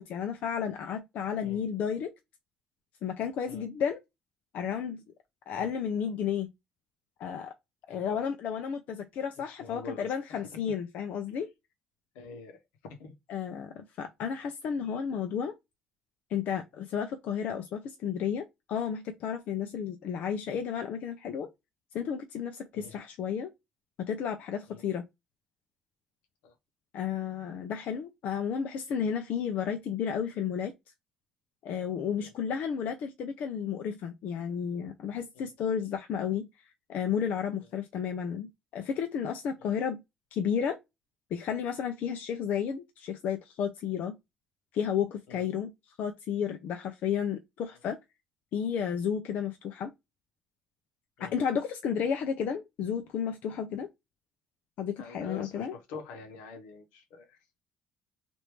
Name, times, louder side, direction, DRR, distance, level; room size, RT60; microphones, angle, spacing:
voice 1, 0.0-2.1 3.0-4.0 4.5-5.0 5.5-6.5 7.2-7.5 7.9-11.5 13.3-15.5 16.3-21.5 21.9-23.5 24.0-25.0 26.9-30.7 31.6-36.5 36.9-40.0 40.3-40.8 41.3-44.2 44.7-48.0 48.5-49.9 51.2-53.9 54.8-55.7, left 7 dB, 65° left, 0.5 m, -32 dB
voice 2, 7.9-8.2 9.4-10.4 12.1-13.1 22.7-23.0 24.7-24.8 26.4-26.5 32.2-32.3 35.3-35.5 39.6-39.7 45.3-45.4 51.2-51.4 55.0-57.4, left 4 dB, 85° left, 0.9 m, -46 dB
3.0 x 2.6 x 3.3 m
supercardioid pair, 75°, 3 cm